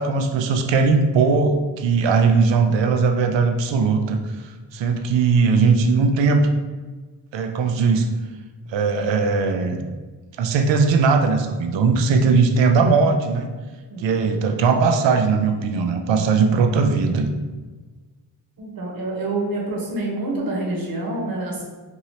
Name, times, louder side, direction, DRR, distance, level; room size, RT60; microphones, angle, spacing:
voice 1, 0.0-6.5 7.3-8.1 8.7-9.8 10.4-13.5 14.0-17.3, right 4 dB, 85° right, 5 dB, 0.6 m, -19 dB
voice 2, 18.6-21.6, right 2 dB, 55° right, -3 dB, 1.2 m, -27 dB
4.7 x 2.7 x 2.8 m, 1.4 s
cardioid pair, 85°, 43 cm